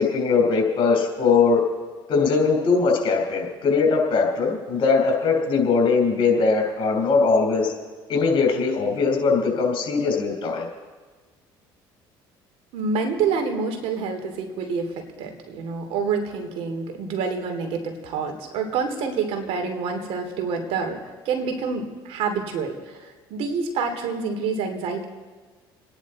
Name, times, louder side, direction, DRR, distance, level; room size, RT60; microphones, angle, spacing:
voice 1, 0.0-1.6 2.1-7.7 8.1-10.7, left 4 dB, 55° left, 1 dB, 4.7 m, -20 dB
voice 2, 12.7-21.0 21.2-22.8 23.3-25.1, right 5 dB, 70° right, 5 dB, 2.7 m, -27 dB
29.0 x 10.5 x 4.2 m, 1.4 s
supercardioid pair, 95°, 10 cm